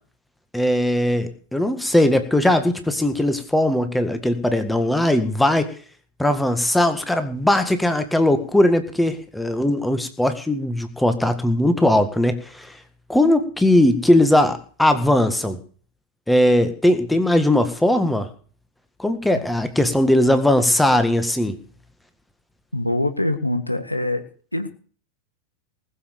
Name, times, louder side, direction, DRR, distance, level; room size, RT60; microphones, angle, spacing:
voice 1, 0.5-5.7 6.2-12.8 13.1-15.6 16.3-18.3 19.0-21.6, left 1 dB, 5° left, 9 dB, 1.8 m, -19 dB
voice 2, 22.7-24.2 24.5-24.7, left 1 dB, 85° left, 9 dB, 1.6 m, -23 dB
19.5 x 7.5 x 6.7 m, 0.43 s
figure-of-eight pair, 90°, 0 cm